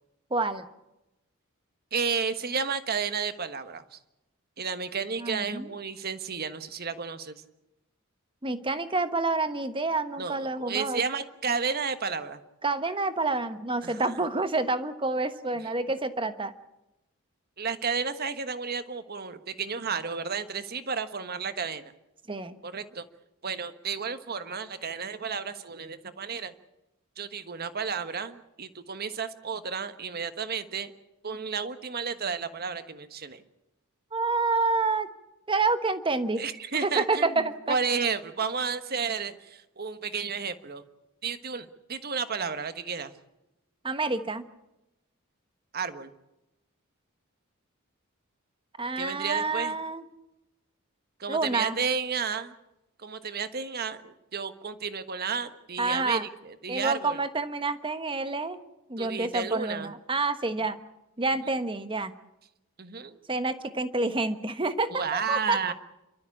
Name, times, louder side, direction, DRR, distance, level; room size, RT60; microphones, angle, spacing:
voice 1, 0.3-0.7 5.2-5.7 8.4-11.0 12.6-16.5 22.3-22.6 34.1-35.1 35.5-36.5 36.8-37.8 43.8-44.4 48.8-50.0 51.3-51.8 55.8-56.2 56.7-58.6 58.9-60.8 61.2-62.1 63.3-65.6, right 3 dB, 25° right, 10 dB, 1.2 m, -28 dB
voice 2, 1.9-4.0 4.6-7.4 10.2-12.4 13.8-14.2 17.6-21.8 22.6-23.1 23.4-26.6 27.2-30.9 31.2-33.4 36.4-40.8 41.2-43.1 45.7-46.1 48.9-49.7 51.2-52.5 53.0-57.2 59.0-59.9 61.4-61.5 62.8-63.2 64.9-65.7, right 5 dB, 45° right, 11 dB, 1.3 m, -32 dB
29.5 x 13.0 x 8.5 m, 0.93 s
head